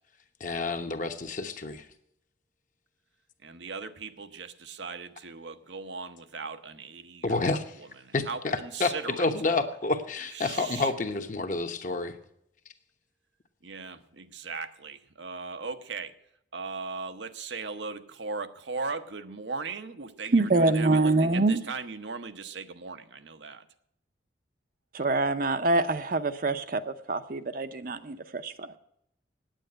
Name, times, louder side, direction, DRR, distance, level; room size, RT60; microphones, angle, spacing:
voice 1, 0.4-1.9 7.2-7.8 8.1-12.2, left 3 dB, 45° left, 6 dB, 1.0 m, -29 dB
voice 2, 3.4-7.5 8.0-9.3 10.3-10.9 13.6-16.1 16.5-23.6, right 4 dB, 75° right, 8 dB, 0.9 m, -38 dB
voice 3, 20.3-21.6 24.9-28.8, right 2 dB, 50° right, 10 dB, 0.7 m, -25 dB
9.1 x 8.9 x 8.8 m, 0.74 s
head